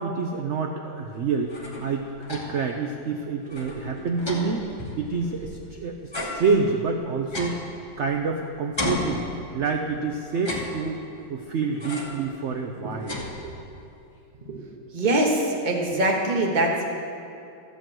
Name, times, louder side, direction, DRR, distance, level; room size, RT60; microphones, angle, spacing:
voice 1, 0.0-4.6 5.0-7.6 8.0-9.2 9.5-13.1, right 4 dB, 75° right, 3 dB, 0.6 m, -27 dB
sound 1, 1.3-2.7 3.1-3.2 3.5-5.7 6.1-8.3 8.8-9.8 10.3-11.2 11.8-12.3 12.7-13.8, left 2 dB, 20° left, 0.9 m, -34 dB
voice 2, 14.4-16.9, right 1 dB, 30° right, 0 dB, 1.2 m, -24 dB
13.5 x 5.2 x 7.5 m, 2.6 s
omnidirectional pair, 2.0 m